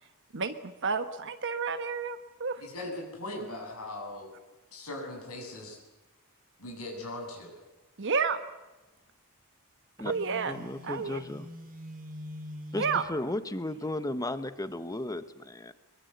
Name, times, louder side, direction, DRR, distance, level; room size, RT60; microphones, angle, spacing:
voice 1, 0.3-2.6 8.0-8.4 10.0-10.5 10.8-11.2 12.8-13.0, right 5 dB, 55° right, 8 dB, 1.2 m, -30 dB
voice 2, 2.6-4.3 4.7-5.8 6.6-7.6, left 1 dB, 75° left, 0 dB, 7.6 m, -39 dB
Telephone, 10.0-13.1, left 1 dB, 40° right, 3.4 m, -44 dB
voice 3, 10.4-11.5 12.7-15.7, left 1 dB, 15° left, 12 dB, 1.2 m, -35 dB
22.5 x 22.5 x 8.2 m, 1.1 s
head